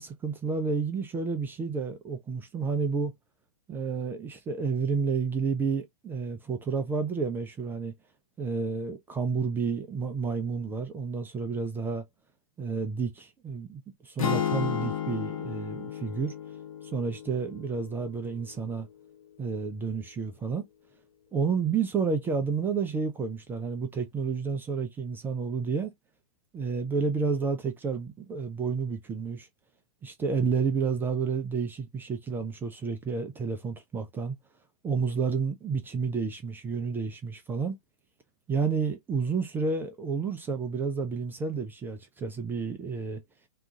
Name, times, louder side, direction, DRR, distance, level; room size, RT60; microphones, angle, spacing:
voice 1, 0.0-3.1 3.7-7.9 8.4-12.0 12.6-16.3 16.8-18.9 19.4-20.6 21.3-25.9 26.5-29.5 30.0-34.4 34.8-37.8 38.5-43.2, right 5 dB, 10° right, 0.4 m, -30 dB
sound 1, 14.2-18.4, left 8 dB, 65° left, 1.0 m, -33 dB
2.8 x 2.3 x 3.6 m
figure-of-eight pair, 115°, 19 cm